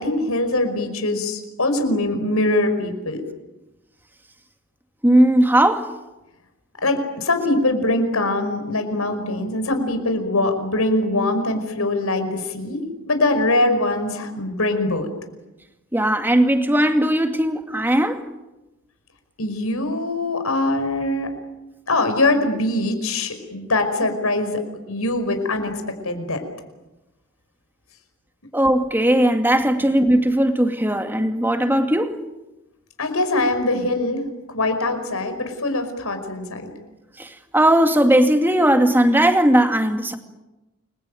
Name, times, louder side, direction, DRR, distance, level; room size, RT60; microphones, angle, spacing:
voice 1, 0.0-3.2 6.8-15.1 19.4-21.3 21.9-24.6 24.9-26.4 33.0-36.7, left 2 dB, 85° left, 5.3 m, -22 dB
voice 2, 5.0-5.9 15.9-18.2 28.5-32.2 37.2-40.2, right 1 dB, 10° right, 2.2 m, -18 dB
29.5 x 22.0 x 9.2 m
head